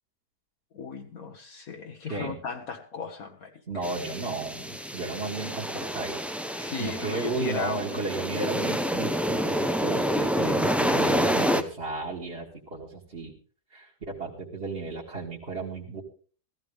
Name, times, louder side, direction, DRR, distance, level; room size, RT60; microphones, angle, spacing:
voice 1, 0.7-3.8 6.6-8.0, left 5 dB, 65° left, 1.5 m, -36 dB
voice 2, 3.7-6.2 6.5-13.3 13.7-16.0, right 3 dB, 40° right, 2.4 m, -34 dB
sound 1, 3.8-11.6, equal, ahead, 0.3 m, -28 dB
15.5 x 14.5 x 3.5 m
omnidirectional pair, 1.7 m